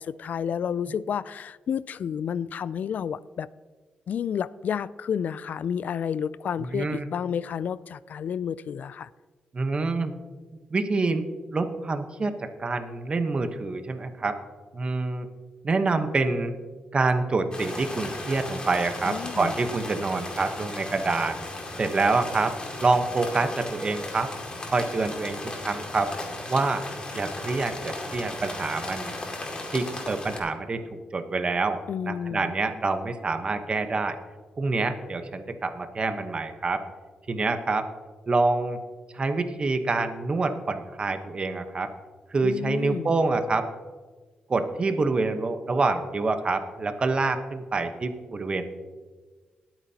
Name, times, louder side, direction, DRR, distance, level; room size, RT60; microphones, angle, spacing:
voice 1, 0.0-3.5 4.1-9.1 19.0-19.5 31.9-32.5 42.4-43.1, left 8 dB, 65° left, 18 dB, 0.3 m, -30 dB
voice 2, 6.6-7.1 9.5-10.1 10.7-11.2 11.5-14.4 14.7-15.3 15.6-16.5 16.9-21.4 21.8-24.3 24.7-26.1 26.5-26.8 27.1-29.1 29.7-30.8 31.1-31.8 32.0-34.2 34.6-36.8 37.3-37.9 38.3-38.8 39.1-41.9 42.3-43.7 44.5-48.7, right 3 dB, 35° right, 7 dB, 1.0 m, -26 dB
sound 1, 17.5-30.4, left 2 dB, 30° left, 2.3 m, -36 dB
20.5 x 9.0 x 2.9 m, 1.4 s
cardioid pair, 105°, 3 cm